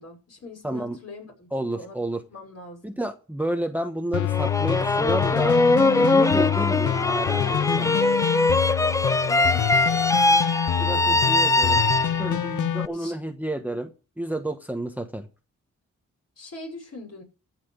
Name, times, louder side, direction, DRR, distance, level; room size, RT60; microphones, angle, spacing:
voice 1, 0.0-2.0 2.3-2.8 9.2-10.5 10.7-11.7 12.9-13.2 16.4-17.2, left 1 dB, 55° left, 6.0 m, -42 dB
voice 2, 0.6-1.0 1.5-2.2 2.8-5.6 5.9-7.9 10.8-11.8 12.2-13.9 14.2-15.3, right 1 dB, 5° right, 1.1 m, -30 dB
sound 1, 4.1-12.9, left 10 dB, 75° left, 0.6 m, -26 dB
sound 2, 4.3-12.5, left 2 dB, 10° left, 0.5 m, -22 dB
15.0 x 5.9 x 6.8 m
cardioid pair, 85°, 31 cm